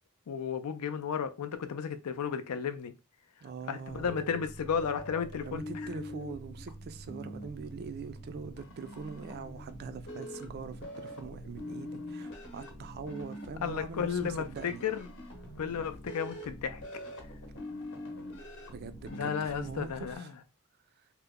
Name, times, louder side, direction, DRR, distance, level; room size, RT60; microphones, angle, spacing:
voice 1, 0.3-2.9 3.7-5.7 13.6-15.1 15.6-16.8 19.1-20.3, left 7 dB, 80° left, 0.4 m, -33 dB
voice 2, 3.4-4.1 5.4-14.8 18.7-20.3, right 5 dB, 45° right, 0.3 m, -43 dB
sound 1, 3.9-20.2, equal, 55° left, 0.8 m, -44 dB
2.8 x 2.0 x 3.5 m
head